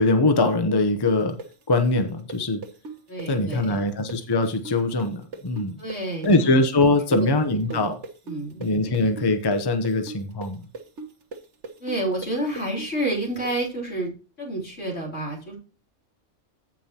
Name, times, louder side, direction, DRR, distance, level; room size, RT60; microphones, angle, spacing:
voice 1, 0.0-1.4 1.7-2.6 3.3-5.8 6.2-8.0 8.6-10.6, left 2 dB, 20° left, 7 dB, 0.8 m, -22 dB
sound 1, 1.1-8.7 8.9-13.5, right 3 dB, 70° right, 1.6 m, -38 dB
voice 2, 3.1-3.8 5.8-6.6 7.1-7.3 7.7-7.8 8.3-8.9 11.8-14.1 14.4-15.6, right 1 dB, 75° left, -3 dB, 3.9 m, -29 dB
15.0 x 5.4 x 2.9 m, 0.36 s
omnidirectional pair, 1.3 m